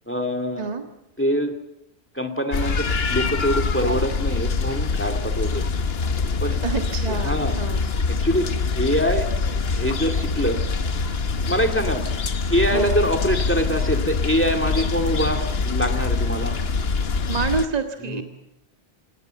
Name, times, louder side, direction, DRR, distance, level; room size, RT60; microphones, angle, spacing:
voice 1, 0.1-0.7 1.2-1.5 2.1-5.7 6.4-6.6 7.1-7.6 8.2-8.5 8.8-9.3 9.7-10.6 11.5-12.0 12.5-16.6 18.0-18.2, equal, 10° left, 9 dB, 2.2 m, -24 dB
sound 1, 2.5-17.7, left 4 dB, 65° left, 1.4 m, -24 dB
voice 2, 6.6-7.9 12.7-13.0 17.3-18.2, right 4 dB, 40° right, 5 dB, 1.7 m, -27 dB
27.5 x 18.0 x 8.0 m, 0.83 s
omnidirectional pair, 1.1 m